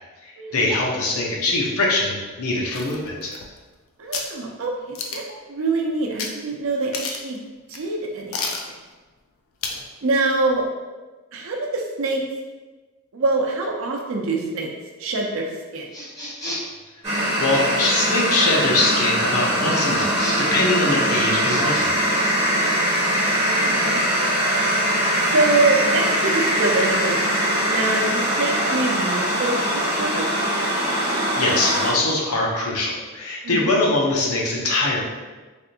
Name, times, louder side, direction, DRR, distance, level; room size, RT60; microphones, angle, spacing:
voice 1, 0.2-3.3 17.4-22.0 31.1-35.0, left 2 dB, 85° left, -2 dB, 0.7 m, -22 dB
sound 1, 2.7-3.7 4.1-4.3 4.9-5.4 6.2-6.3 6.6-6.7 6.9-7.4 7.7-7.8 8.3-8.7 9.6-9.9 10.2-10.3, left 4 dB, 60° left, 0.4 m, -30 dB
voice 2, 4.0-7.4 7.7-8.8 10.0-10.6 11.3-12.3 13.1-14.7 15.0-15.9 22.6-23.2 23.5-24.0 25.2-27.3 27.7-30.3 33.4-33.7, right 2 dB, 65° right, 0 dB, 0.5 m, -25 dB
sound 2, 15.9-16.8 19.7-20.6 21.4-21.9, equal, 15° left, 0.7 m, -33 dB
sound 3, 17.0-31.9, right 1 dB, 30° right, 1.2 m, -22 dB
3.3 x 2.5 x 2.7 m, 1.3 s
head